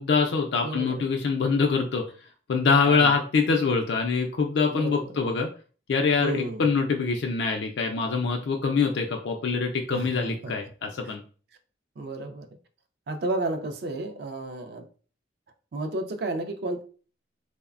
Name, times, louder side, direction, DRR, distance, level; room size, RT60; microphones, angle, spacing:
voice 1, 0.0-2.0 2.5-5.5 5.9-11.2, left 5 dB, 65° left, 2 dB, 0.3 m, -24 dB
voice 2, 0.6-1.0 2.9-3.1 4.7-5.1 6.2-6.6 9.9-10.5 12.0-12.5 13.1-14.9 15.7-16.8, right 2 dB, 55° right, 6 dB, 0.4 m, -32 dB
3.1 x 2.0 x 2.4 m, 0.39 s
head